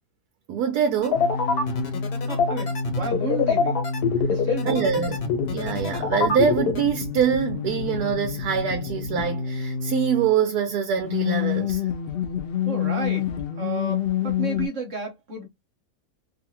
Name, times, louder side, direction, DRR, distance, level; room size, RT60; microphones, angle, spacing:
voice 1, 0.5-1.2 4.6-11.8, right 7 dB, 75° right, 1.1 m, -24 dB
sound 1, 1.0-6.8, left 5 dB, 70° left, 1.4 m, -24 dB
sound 2, 1.1-10.3 11.0-14.7, left 7 dB, 90° left, 0.5 m, -28 dB
voice 2, 2.3-3.8 4.3-4.8 12.6-15.5, right 4 dB, 55° right, 1.1 m, -33 dB
2.8 x 2.4 x 2.8 m
omnidirectional pair, 1.7 m